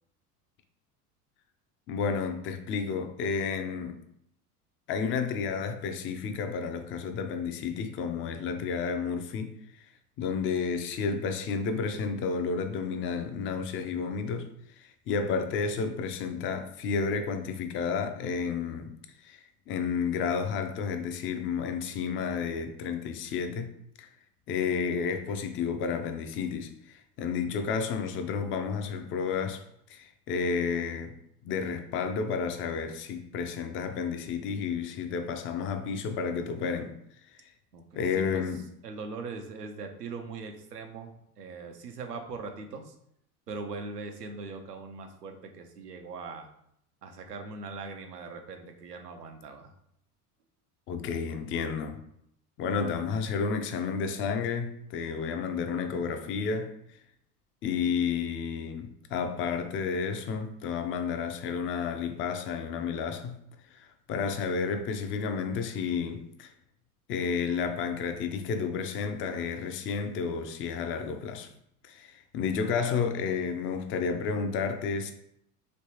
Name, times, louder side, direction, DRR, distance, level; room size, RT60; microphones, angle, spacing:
voice 1, 1.9-4.0 4.9-9.5 10.2-14.5 14.8-18.9 19.2-23.7 24.0-24.1 24.5-29.6 29.9-31.1 31.4-36.9 37.9-38.6 50.9-52.0 52.6-56.7 57.6-63.4 63.7-66.5 67.1-71.5 71.8-75.1, left 5 dB, 30° left, 0.4 m, -31 dB
voice 2, 37.7-38.5 38.8-42.9 43.5-46.5 47.0-49.7, right 4 dB, 90° right, 0.6 m, -41 dB
3.2 x 3.0 x 2.9 m
hypercardioid pair, 80°, 46 cm